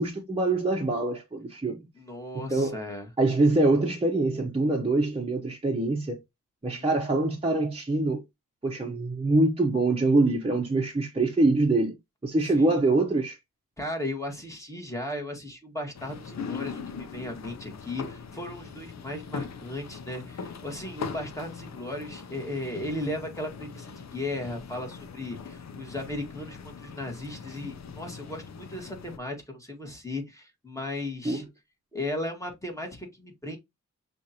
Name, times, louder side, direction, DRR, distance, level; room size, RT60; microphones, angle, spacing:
voice 1, 0.0-1.8 2.5-2.8 3.2-6.2 6.6-8.2 8.6-11.9 12.2-13.4 31.2-31.4, right 2 dB, 20° right, 1.0 m, -24 dB
voice 2, 2.0-3.1 6.7-7.3 12.4-12.7 13.8-31.4 31.9-33.6, left 1 dB, 10° left, 1.7 m, -36 dB
sound 1, 15.9-29.2, left 5 dB, 60° left, 0.6 m, -41 dB
6.2 x 2.6 x 2.8 m
wide cardioid pair, 70°, 31 cm